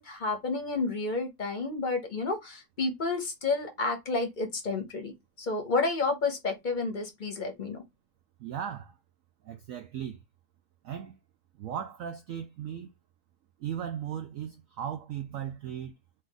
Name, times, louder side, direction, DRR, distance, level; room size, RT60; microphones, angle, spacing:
voice 1, 0.0-5.1 5.4-7.8, left 3 dB, 40° left, 0.7 m, -30 dB
voice 2, 8.4-8.9 9.4-10.2 10.8-11.2 11.6-12.9 13.6-15.9, right 9 dB, 90° right, 0.7 m, -37 dB
4.2 x 2.4 x 3.8 m
omnidirectional pair, 2.0 m